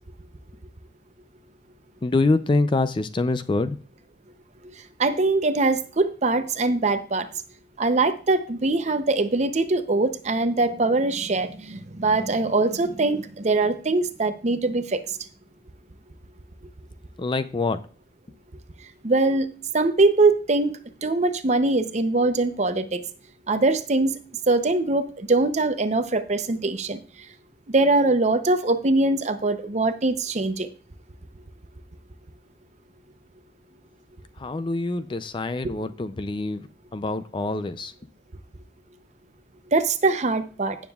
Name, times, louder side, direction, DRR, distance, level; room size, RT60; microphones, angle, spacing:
voice 1, 2.0-3.8 17.2-17.8 34.4-36.6 36.9-37.9, left 3 dB, 25° left, 12 dB, 0.4 m, -25 dB
voice 2, 5.0-7.3 7.8-15.0 19.0-23.0 23.5-24.2 24.5-27.0 27.7-30.7 35.6-35.7 39.7-40.8, right 2 dB, 35° right, 10 dB, 0.6 m, -22 dB
16.0 x 7.2 x 2.3 m, 0.39 s
head